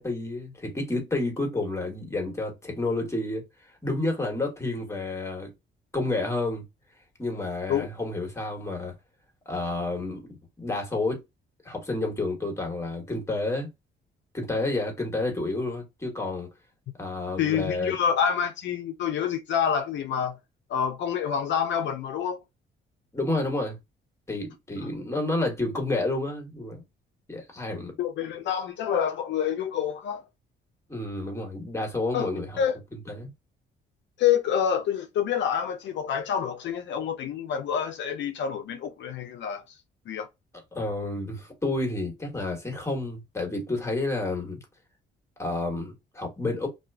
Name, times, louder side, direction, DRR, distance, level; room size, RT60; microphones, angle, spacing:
voice 1, 0.0-3.4 3.8-5.5 5.9-6.6 7.2-8.9 9.5-11.2 11.6-13.7 14.3-16.5 17.0-17.9 23.1-23.8 24.3-26.8 27.3-27.9 30.9-32.6 33.1-33.3 40.7-44.6 45.4-46.7, left 2 dB, 15° left, 1.2 m, -30 dB
voice 2, 17.4-20.4 20.7-22.4 24.8-24.9 28.0-30.2 32.1-32.3 32.6-32.7 34.2-39.8 40.1-40.3, left 8 dB, 65° left, 0.4 m, -27 dB
2.4 x 2.3 x 2.2 m
cardioid pair, 90°, 20 cm